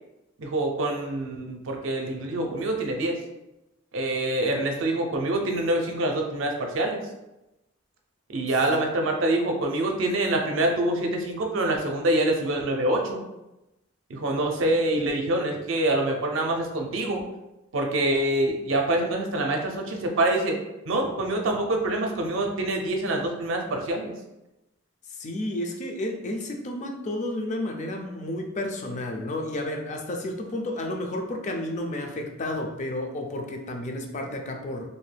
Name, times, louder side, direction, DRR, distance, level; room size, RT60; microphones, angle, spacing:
voice 1, 0.4-3.1 3.9-7.0 8.3-13.2 14.1-17.2 17.7-20.6 20.9-24.1, right 1 dB, 70° right, 2 dB, 0.5 m, -25 dB
voice 2, 25.1-34.9, left 1 dB, 35° left, 3 dB, 0.4 m, -31 dB
2.6 x 2.2 x 3.3 m, 0.95 s
head